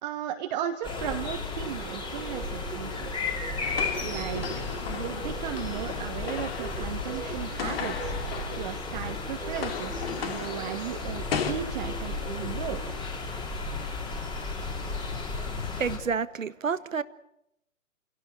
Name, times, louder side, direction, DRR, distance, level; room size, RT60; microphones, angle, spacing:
voice 1, 0.0-3.1 4.0-4.4 4.9-8.1 8.6-12.8, right 10 dB, 30° right, 4 dB, 1.6 m, -35 dB
sound 1, 0.8-16.0, left 3 dB, 10° left, 3.6 m, -34 dB
sound 2, 1.6-12.9, right 5 dB, 10° right, 2.2 m, -43 dB
sound 3, 3.6-9.1 9.4-11.5, left 7 dB, 45° left, 3.3 m, -36 dB
voice 2, 15.3-17.0, right 6 dB, 70° right, 14 dB, 1.5 m, -30 dB
29.0 x 17.5 x 7.9 m, 0.81 s
figure-of-eight pair, 130°, 41 cm